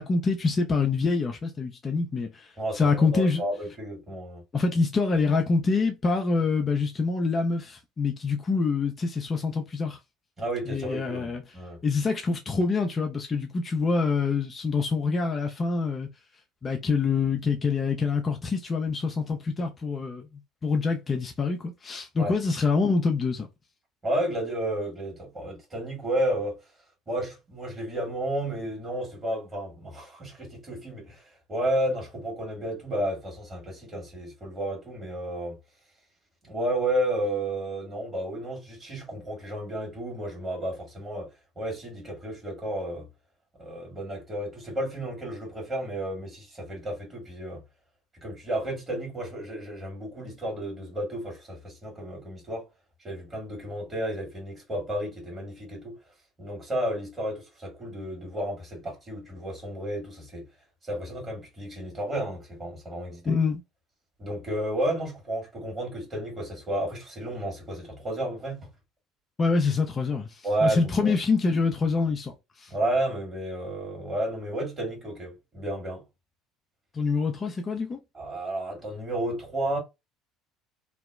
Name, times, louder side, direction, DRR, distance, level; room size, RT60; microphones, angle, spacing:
voice 1, 0.0-3.4 4.5-10.0 10.7-11.4 11.8-16.1 16.6-20.3 20.6-23.5 63.3-63.6 69.4-72.7 76.9-78.0, left 4 dB, 30° left, 0.4 m, -26 dB
voice 2, 2.6-4.4 10.4-11.8 22.2-22.3 24.0-26.6 27.1-31.2 31.5-35.6 36.4-41.3 41.5-43.1 43.6-47.6 48.1-52.7 53.0-55.9 56.4-60.5 60.8-63.4 64.2-68.7 70.4-71.2 72.7-76.0 78.1-79.8, right 1 dB, 25° right, 1.6 m, -32 dB
2.7 x 2.1 x 2.2 m
figure-of-eight pair, 60°, 0 cm